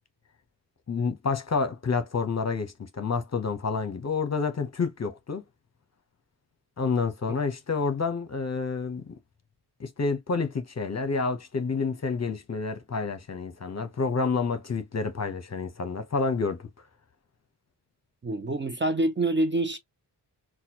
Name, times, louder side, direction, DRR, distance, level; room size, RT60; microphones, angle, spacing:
voice 1, 0.9-5.4 6.8-9.1 9.8-16.7, left 4 dB, 35° left, 0.8 m, -29 dB
voice 2, 18.2-19.8, right 2 dB, 25° right, 0.5 m, -26 dB
4.0 x 2.3 x 2.9 m
cardioid pair, 65°, 43 cm